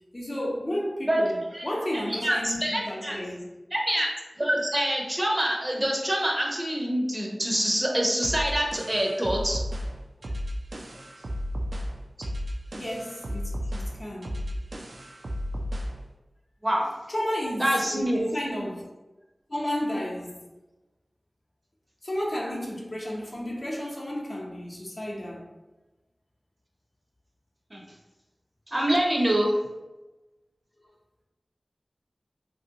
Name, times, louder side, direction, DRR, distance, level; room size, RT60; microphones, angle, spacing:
voice 1, 0.1-3.5 10.9-11.0 12.8-14.4 17.1-18.8 19.5-20.5 22.0-25.5, equal, 45° left, -3 dB, 0.7 m, -32 dB
voice 2, 1.1-1.7 2.1-3.2 3.7-4.1 4.4-9.6 16.6-16.9 17.6-18.2 27.7-27.8 28.7-29.5, right 1 dB, 30° right, -1 dB, 0.6 m, -25 dB
sound 1, 8.2-16.0, equal, 80° right, 0.4 m, -33 dB
2.9 x 2.7 x 2.7 m, 1.1 s
wide cardioid pair, 55°, 0 cm